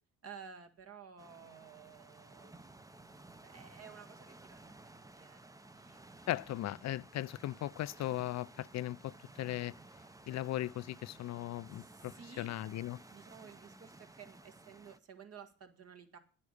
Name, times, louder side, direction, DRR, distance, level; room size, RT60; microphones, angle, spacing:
voice 1, 0.2-6.0 11.8-12.5 13.1-16.2, right 6 dB, 50° right, 1.8 m, -54 dB
sound 1, 1.2-15.0, right 2 dB, 10° right, 0.7 m, -56 dB
voice 2, 6.3-9.7 10.3-13.0, left 14 dB, 65° left, 0.5 m, -38 dB
10.0 x 8.6 x 6.5 m
cardioid pair, 90°, 30 cm